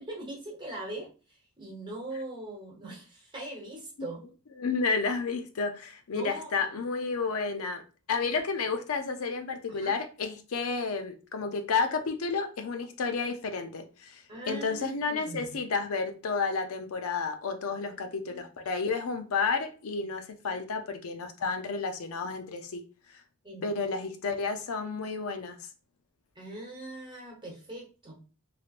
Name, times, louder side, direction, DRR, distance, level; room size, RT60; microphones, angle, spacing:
voice 1, 0.0-4.2 6.1-6.5 9.7-9.9 14.3-15.6 17.9-18.4 20.4-20.6 23.4-23.9 26.3-28.2, right 2 dB, 20° right, 1.1 m, -41 dB
voice 2, 4.6-7.8 8.1-22.8 23.6-25.6, left 4 dB, 70° left, 0.5 m, -31 dB
3.2 x 3.0 x 2.4 m
head